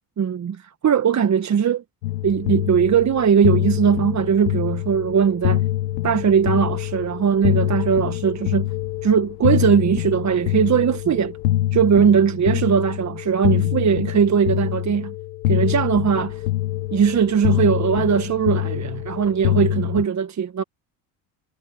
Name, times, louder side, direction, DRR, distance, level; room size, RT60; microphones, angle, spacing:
voice 1, 0.2-1.8 2.2-5.6 6.0-8.7 9.0-11.3 11.7-15.1 15.5-16.4 16.9-20.6, right 7 dB, 35° right, 1.6 m, -19 dB
sound 1, 2.0-20.1, left 15 dB, 90° left, 1.3 m, -25 dB
hypercardioid pair, 80°, 49 cm